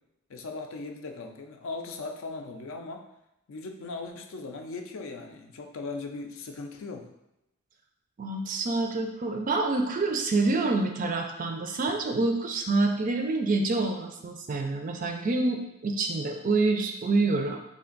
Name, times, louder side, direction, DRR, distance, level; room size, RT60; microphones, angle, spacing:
voice 1, 0.3-3.1 3.5-7.1, left 3 dB, 70° left, 4 dB, 0.4 m, -38 dB
voice 2, 8.2-17.6, right 3 dB, 40° right, 4 dB, 0.3 m, -27 dB
3.4 x 2.5 x 3.8 m, 0.88 s
head